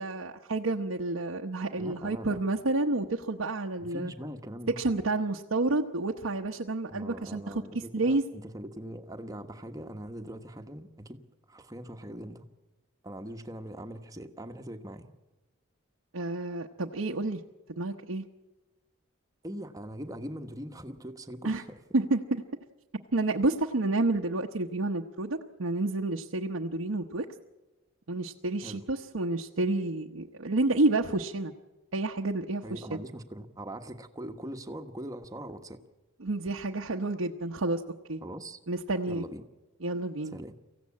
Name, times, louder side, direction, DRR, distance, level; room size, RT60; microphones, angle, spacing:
voice 1, 0.0-4.1 4.8-8.2 16.1-17.4 17.7-18.2 21.4-21.6 21.9-22.4 23.1-27.3 28.1-31.5 31.9-33.0 36.2-37.8 38.1-38.2 38.7-39.2 39.8-40.4, right 2 dB, 90° right, 1 dB, 1.0 m, -29 dB
voice 2, 1.8-2.4 3.8-4.9 6.9-11.2 11.5-12.5 13.0-15.1 19.4-21.6 28.6-28.8 32.6-35.8 38.2-38.6 39.1-39.4 40.3-40.5, right 1 dB, 15° right, 7 dB, 1.2 m, -41 dB
24.5 x 15.5 x 8.6 m, 1.1 s
head